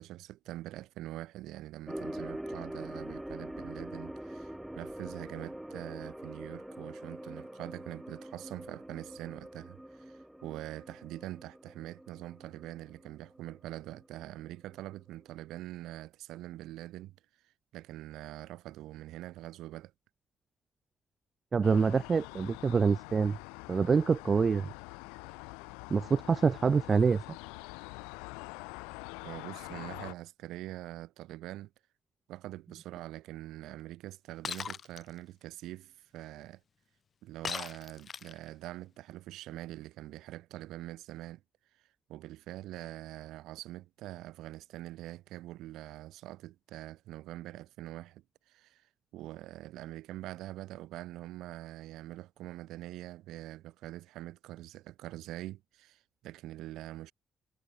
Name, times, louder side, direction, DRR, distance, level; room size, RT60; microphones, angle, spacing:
voice 1, 0.0-17.2 17.7-19.9 29.2-31.7 32.3-36.6 37.2-41.4 42.1-48.9 49.1-57.1, right 15 dB, 75° right, 2.2 m, -44 dB
sound 1, 1.9-14.4 14.7-14.8 15.4-15.5, right 1 dB, 5° right, 2.3 m, -44 dB
voice 2, 21.5-23.4 23.7-24.7 25.9-27.2, right 5 dB, 45° right, 0.3 m, -26 dB
sound 2, 21.6-30.1, left 32 dB, 80° left, 1.0 m, -45 dB
Shatter, 34.4-35.0 37.4-38.5, left 6 dB, 50° left, 0.7 m, -38 dB
hypercardioid pair, 45°, 0 cm